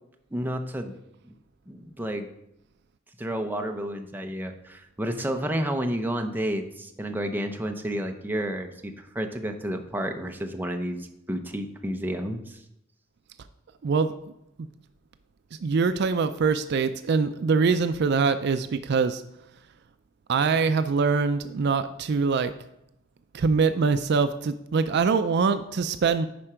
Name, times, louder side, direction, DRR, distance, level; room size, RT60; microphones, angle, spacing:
voice 1, 0.3-1.0 1.2-1.3 1.7-2.3 3.2-12.6, equal, 10° right, 4 dB, 0.7 m, -31 dB
voice 2, 13.8-14.1 15.6-19.2 20.3-22.5 23.3-26.3, right 5 dB, 55° right, 11 dB, 0.4 m, -23 dB
10.5 x 4.4 x 5.0 m, 0.83 s
head